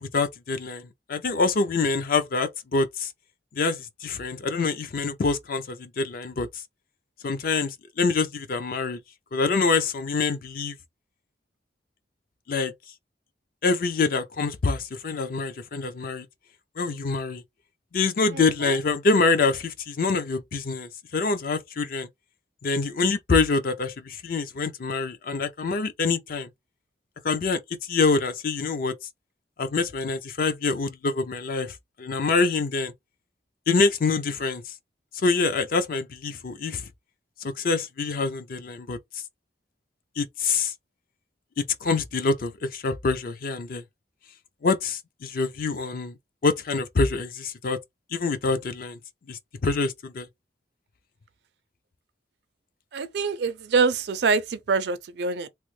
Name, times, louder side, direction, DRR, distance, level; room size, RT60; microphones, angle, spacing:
voice 1, 0.0-3.1 3.5-6.5 7.2-9.0 9.3-10.7 12.5-12.7 13.6-16.3 16.8-17.4 17.9-22.1 22.6-26.5 27.2-27.6 27.9-29.0 29.6-32.9 33.7-34.6 35.2-36.8 37.4-39.0 40.2-40.7 41.6-43.8 44.6-46.2 46.4-47.8 48.1-49.0 49.3-50.3, left 4 dB, 55° left, 0.5 m, -25 dB
voice 2, 18.3-18.8 52.9-55.5, right 4 dB, 70° right, 0.4 m, -25 dB
3.0 x 2.0 x 3.1 m
head